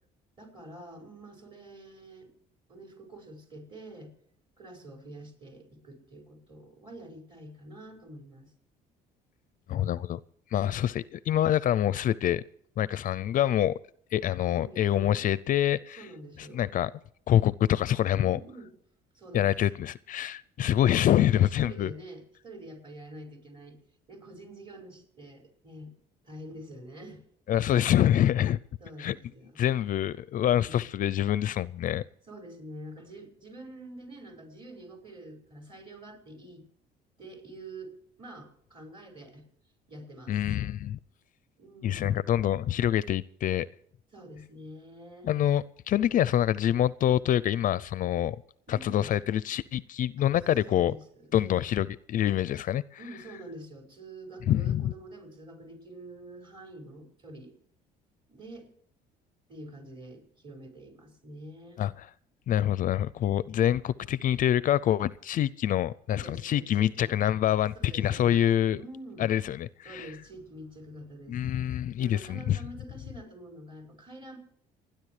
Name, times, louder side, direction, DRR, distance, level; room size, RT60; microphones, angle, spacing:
voice 1, 0.4-2.3 2.7-4.1 4.6-8.5 10.5-11.1 14.6-15.3 16.0-16.7 18.2-18.7 19.1-19.6 20.6-20.8 21.3-23.8 24.1-25.9 26.2-27.3 27.7-27.9 28.8-29.6 30.4-30.9 32.3-36.6 37.2-39.5 39.9-40.6 41.6-42.3 44.1-45.3 48.7-49.1 50.2-50.3 50.7-51.6 53.0-57.5 58.3-58.7 59.5-61.8 66.1-67.2 67.8-68.5 68.8-69.3 69.8-71.4 72.0-74.4, right 1 dB, 30° right, 5.3 m, -47 dB
voice 2, 9.7-10.2 10.5-12.4 12.8-13.8 14.1-16.0 16.5-16.9 17.3-18.4 19.3-21.9 27.5-28.6 29.0-29.2 29.6-32.0 40.3-41.0 41.8-43.7 45.2-48.4 48.7-50.9 51.3-52.8 54.5-54.9 61.8-62.1 62.5-68.8 69.2-70.1 71.3-72.6, left 11 dB, 50° left, 0.4 m, -26 dB
29.0 x 10.5 x 3.3 m
cardioid pair, 110°, 17 cm